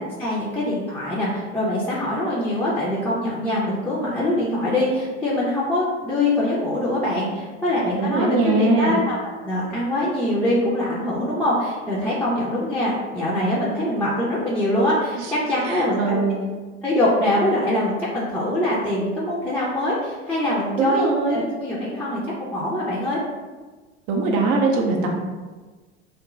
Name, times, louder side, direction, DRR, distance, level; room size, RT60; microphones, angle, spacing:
voice 1, 0.0-9.2 9.4-16.2 16.8-23.2, left 1 dB, 5° left, -7 dB, 0.5 m, -23 dB
voice 2, 8.0-9.0 15.2-15.3 15.6-16.4 20.8-21.4 24.1-25.2, right 3 dB, 40° right, 0 dB, 0.5 m, -21 dB
2.5 x 2.1 x 3.0 m, 1.3 s
hypercardioid pair, 80°, 34 cm